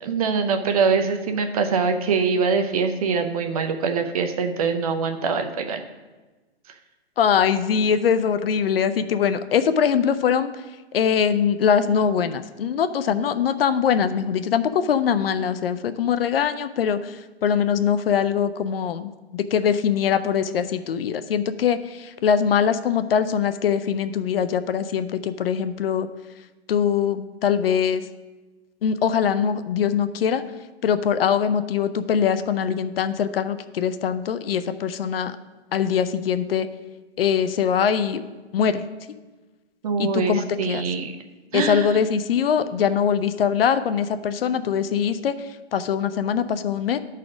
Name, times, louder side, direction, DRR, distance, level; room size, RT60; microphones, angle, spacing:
voice 1, 0.0-5.8 6.7-6.8 39.8-41.1 41.5-42.0, right 5 dB, 35° right, 6 dB, 0.6 m, -23 dB
voice 2, 7.2-10.5 10.9-26.1 26.7-28.0 28.8-30.4 30.8-35.4 35.7-36.7 37.2-38.2 38.5-38.8 40.0-40.8 41.5-45.4 45.7-47.0, left 7 dB, 60° left, 11 dB, 0.6 m, -22 dB
12.0 x 4.2 x 4.9 m, 1.2 s
hypercardioid pair, 155°, 32 cm